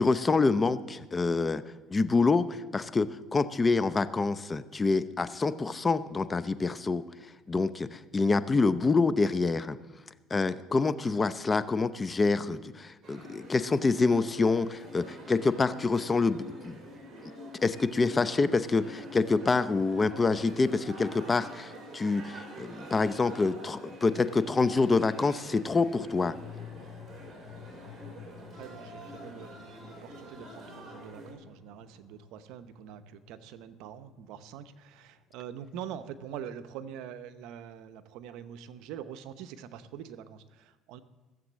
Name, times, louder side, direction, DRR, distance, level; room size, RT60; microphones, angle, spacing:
voice 1, 0.0-1.6 1.9-7.0 7.5-9.8 10.3-16.8 17.6-26.4, left 3 dB, 25° left, 13 dB, 0.7 m, -26 dB
sound 1, 13.0-31.3, equal, 45° right, 3.7 m, -46 dB
sound 2, 25.1-35.7 36.1-36.2, left 8 dB, 40° left, 2.3 m, -51 dB
voice 2, 28.3-41.0, right 9 dB, 75° right, 11 dB, 0.8 m, -44 dB
16.0 x 7.6 x 7.4 m, 1.2 s
cardioid pair, 105°, 0 cm